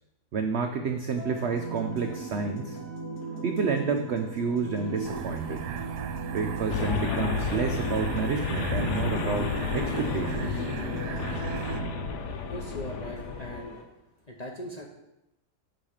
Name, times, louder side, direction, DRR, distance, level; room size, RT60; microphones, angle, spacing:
voice 1, 0.3-2.8 3.4-5.6 6.3-10.6, right 5 dB, 70° right, 5 dB, 0.6 m, -30 dB
sound 1, 1.2-13.8, right 3 dB, 65° left, 1.6 m, -37 dB
sound 2, 5.0-11.8, right 9 dB, 90° right, 1.2 m, -38 dB
sound 3, 6.7-13.6, left 6 dB, 85° left, 1.2 m, -32 dB
voice 2, 12.5-13.8 14.3-14.9, left 1 dB, 40° left, -1 dB, 0.6 m, -39 dB
8.7 x 3.2 x 6.4 m, 0.89 s
omnidirectional pair, 1.7 m